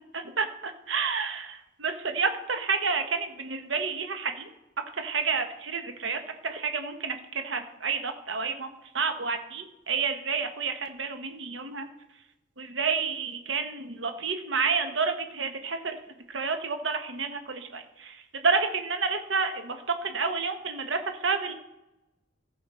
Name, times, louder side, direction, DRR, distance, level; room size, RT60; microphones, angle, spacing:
voice 1, 0.4-4.5 4.9-8.7 8.9-11.9 12.6-16.0 16.3-19.8 20.0-21.5, right 5 dB, 65° right, 6 dB, 1.1 m, -30 dB
14.5 x 5.6 x 4.3 m, 0.96 s
head